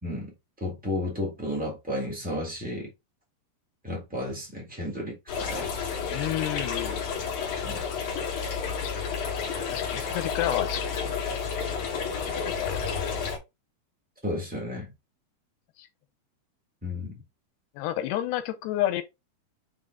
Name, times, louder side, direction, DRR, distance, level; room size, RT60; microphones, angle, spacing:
voice 1, 0.0-0.3 0.6-2.9 3.8-5.7 7.6-7.8 14.2-14.9 16.8-17.2, left 1 dB, 15° right, 0.3 m, -33 dB
sound 1, 5.3-13.4, left 6 dB, 55° left, 3.0 m, -31 dB
voice 2, 6.1-7.3 8.8-8.9 9.7-11.1 11.7-11.9 12.3-12.9 15.8-15.9 17.8-19.0, left 13 dB, 90° left, 2.9 m, -31 dB
7.1 x 3.6 x 3.9 m
omnidirectional pair, 4.7 m